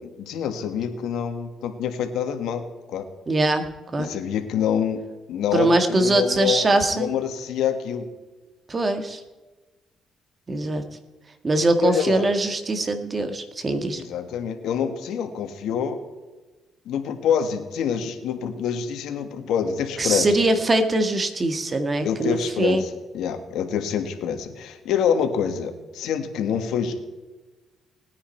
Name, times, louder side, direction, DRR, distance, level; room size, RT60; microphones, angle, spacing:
voice 1, 0.0-3.0 4.0-5.0 5.3-8.1 11.8-12.3 13.9-16.0 16.8-20.3 22.0-22.9 23.1-26.9, left 8 dB, 85° left, 7 dB, 1.7 m, -26 dB
voice 2, 3.3-4.1 5.5-7.1 8.7-9.2 10.5-10.8 11.4-14.0 20.0-22.8, right 2 dB, 30° right, 8 dB, 1.7 m, -22 dB
19.5 x 9.8 x 4.5 m, 1.2 s
cardioid pair, 90°, 0 cm